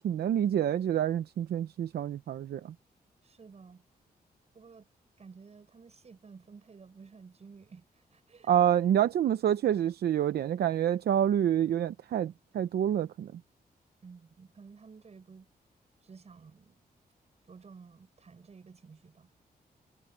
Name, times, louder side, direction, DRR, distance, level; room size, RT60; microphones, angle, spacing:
voice 1, 0.0-2.7 8.5-13.3, right 10 dB, 80° right, 0.7 m, -27 dB
voice 2, 3.2-3.8 4.5-4.9 5.2-8.5 9.0-9.1 10.3-10.5 14.0-15.5 16.0-16.8 17.5-19.3, right 5 dB, 40° right, 7.1 m, -53 dB
wide cardioid pair, 120°, 16 cm